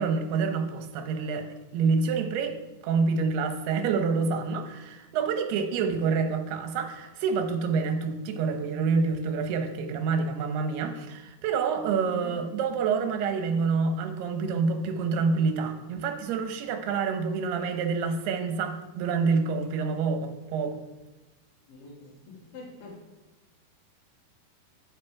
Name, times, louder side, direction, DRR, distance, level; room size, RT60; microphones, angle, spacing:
voice 1, 0.0-1.5 1.7-2.6 2.8-20.8, right 5 dB, 80° right, 5 dB, 2.9 m, -27 dB
voice 2, 12.1-12.4 21.7-23.0, left 2 dB, 55° left, -3 dB, 1.7 m, -44 dB
8.7 x 7.6 x 4.7 m, 1.1 s
omnidirectional pair, 4.6 m